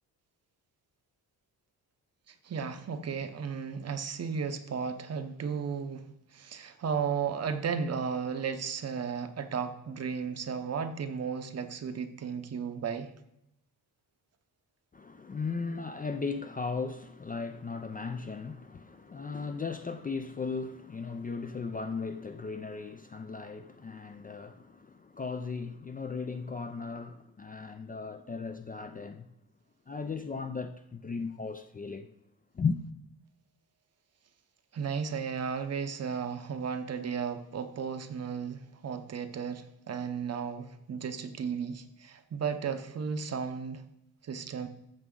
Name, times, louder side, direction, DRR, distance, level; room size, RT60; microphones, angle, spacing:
voice 1, 2.3-6.1 6.3-13.1 34.7-43.8 44.2-44.7, right 6 dB, 40° right, 0.7 m, -34 dB
voice 2, 14.9-29.3 29.9-32.1 32.5-32.8, left 4 dB, 25° left, 0.4 m, -36 dB
14.0 x 6.1 x 3.8 m
wide cardioid pair, 145°, 38 cm